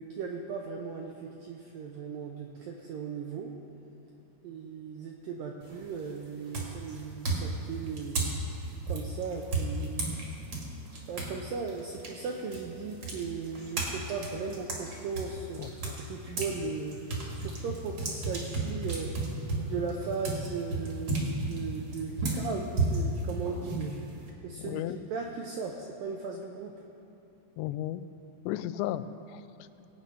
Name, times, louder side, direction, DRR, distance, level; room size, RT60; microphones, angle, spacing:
voice 1, 0.0-3.5 4.4-8.3 8.9-10.1 11.1-17.0 17.3-19.1 19.5-23.9 24.4-24.8 25.1-26.7, right 5 dB, 80° right, 1 dB, 2.0 m, -37 dB
sound 1, 5.6-6.0 6.5-11.4 11.7-16.6 16.9-24.3, right 2 dB, 45° right, 2.1 m, -33 dB
voice 2, 15.6-16.0 24.6-25.0 27.6-28.1 28.5-29.0 29.3-29.4, left 13 dB, 90° left, 13 dB, 2.8 m, -34 dB
20.0 x 8.7 x 5.6 m, 2.8 s
omnidirectional pair, 5.1 m